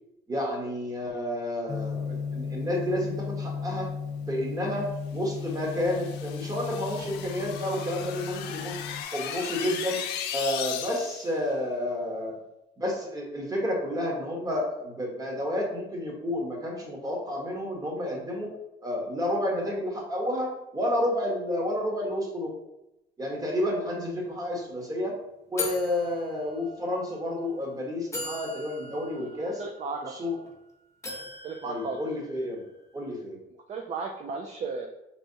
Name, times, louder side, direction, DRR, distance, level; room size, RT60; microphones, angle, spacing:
voice 1, 0.3-3.9 4.3-8.8 9.1-10.0 10.3-12.3 12.8-18.6 18.8-22.5 23.2-25.2 25.5-29.6 30.0-30.4 31.6-32.6 32.9-33.4, left 1 dB, 20° right, -1 dB, 1.2 m, -30 dB
Gong, 1.7-9.0, left 5 dB, 50° left, 1.1 m, -35 dB
sound 1, 5.4-11.3, left 8 dB, 85° left, 0.5 m, -37 dB
sound 2, 24.2-24.3 24.6-24.8 25.6-27.0 27.6-27.7 28.1-30.5 31.0-32.7, left 3 dB, 15° left, 1.0 m, -39 dB
voice 2, 29.3-30.2 31.4-32.0 33.7-34.9, right 4 dB, 40° right, 3 dB, 0.4 m, -35 dB
4.5 x 3.3 x 2.7 m, 0.88 s
cardioid pair, 110°, 17 cm